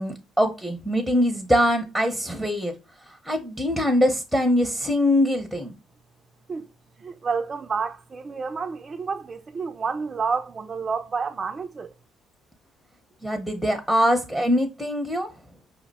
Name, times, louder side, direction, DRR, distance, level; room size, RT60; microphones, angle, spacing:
voice 1, 0.0-2.7 3.1-5.8 13.2-15.3, equal, 5° left, 0.7 m, -23 dB
voice 2, 7.0-11.9, right 5 dB, 35° right, 0.4 m, -29 dB
5.6 x 2.1 x 4.0 m
cardioid pair, 105°, 0 cm